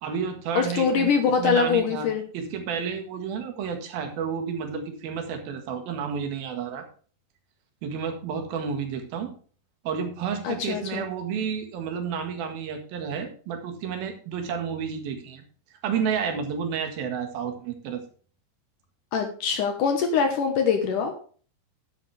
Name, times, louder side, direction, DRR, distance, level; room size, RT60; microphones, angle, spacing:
voice 1, 0.0-1.1 1.4-2.1 2.3-6.9 7.8-9.3 9.8-15.4 15.8-18.0, right 6 dB, 65° right, 5 dB, 3.3 m, -31 dB
voice 2, 0.6-2.2 10.4-11.1 19.1-21.1, left 6 dB, 65° left, 6 dB, 2.2 m, -23 dB
11.0 x 10.5 x 3.4 m, 0.41 s
omnidirectional pair, 5.0 m